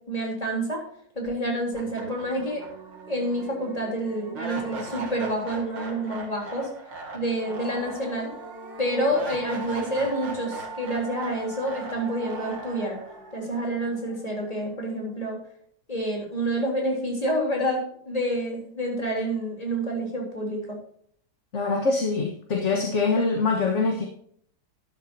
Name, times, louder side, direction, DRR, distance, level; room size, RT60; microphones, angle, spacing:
voice 1, 0.1-0.8 1.2-2.7 3.1-6.7 7.1-8.3 8.8-13.0 13.3-15.4 15.9-20.8, right 1 dB, 15° left, -1 dB, 3.7 m, -28 dB
sound 1, 1.3-1.4 1.7-14.8, right 3 dB, 60° right, 2.8 m, -39 dB
voice 2, 21.5-24.1, left 4 dB, 40° left, 2 dB, 1.5 m, -24 dB
12.5 x 12.0 x 2.8 m, 0.63 s
omnidirectional pair, 2.3 m